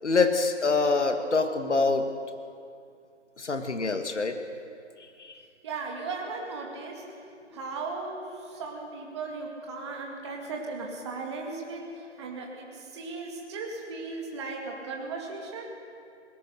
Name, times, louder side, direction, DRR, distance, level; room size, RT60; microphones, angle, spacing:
voice 1, 0.0-2.1 3.4-4.4, left 3 dB, 70° left, 7 dB, 2.2 m, -25 dB
voice 2, 5.6-7.1 7.5-15.7, right 3 dB, 25° right, 0 dB, 2.0 m, -37 dB
22.0 x 19.0 x 6.5 m, 2.4 s
figure-of-eight pair, 160°, 36 cm